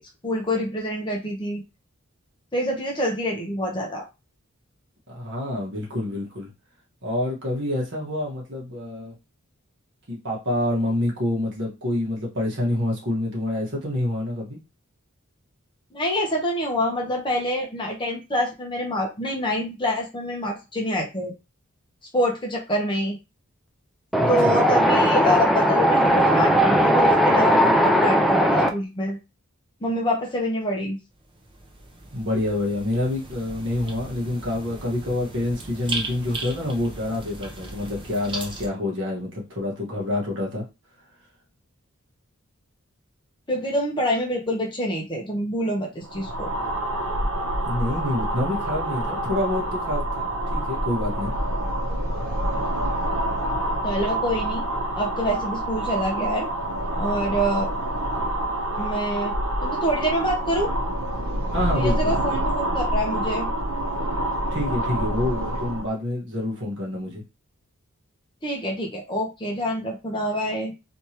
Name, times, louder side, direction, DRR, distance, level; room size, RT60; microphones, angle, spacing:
voice 1, 0.2-1.6 2.5-4.0 15.9-21.3 22.1-23.2 24.3-29.2 29.8-31.0 43.5-46.5 53.8-54.6 54.9-56.5 57.0-57.7 58.8-59.3 59.6-60.7 61.0-61.1 61.7-63.5 68.4-70.7, equal, 20° left, -1 dB, 0.9 m, -26 dB
voice 2, 5.1-6.5 7.0-9.1 10.1-14.6 24.2-24.6 32.1-40.6 47.6-51.3 61.5-62.2 64.5-67.2, left 1 dB, 55° right, -3 dB, 1.6 m, -27 dB
Wind, 24.1-28.7, equal, ahead, 0.4 m, -18 dB
sound 1, 31.1-38.7, right 2 dB, 25° right, 0.7 m, -37 dB
sound 2, 46.0-65.9, right 1 dB, 80° right, 0.9 m, -27 dB
3.4 x 3.1 x 2.9 m, 0.26 s
head